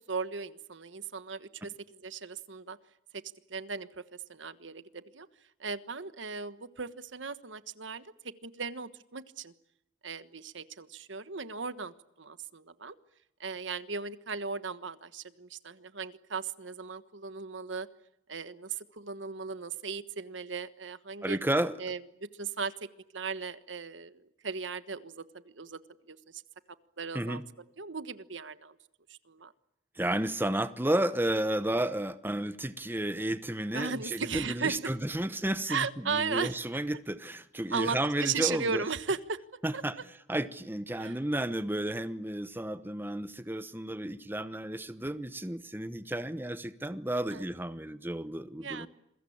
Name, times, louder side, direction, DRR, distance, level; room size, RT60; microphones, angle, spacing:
voice 1, 0.1-1.7 2.0-2.8 3.5-4.0 4.3-5.3 5.6-9.5 10.0-12.9 13.4-17.9 18.3-21.4 21.8-22.7 23.1-25.2 25.5-25.8 26.1-26.4 27.0-27.4 27.8-28.8 29.1-29.5 33.7-34.9 35.7-36.6 37.7-39.4 39.7-39.8 41.0-41.1 47.3-47.4 48.6-48.9, right 5 dB, 75° right, 1.3 m, -37 dB
voice 2, 21.2-21.8 27.1-27.4 29.9-38.8 39.6-40.0 40.3-48.9, right 1 dB, 10° right, 1.0 m, -32 dB
28.0 x 22.5 x 8.7 m
head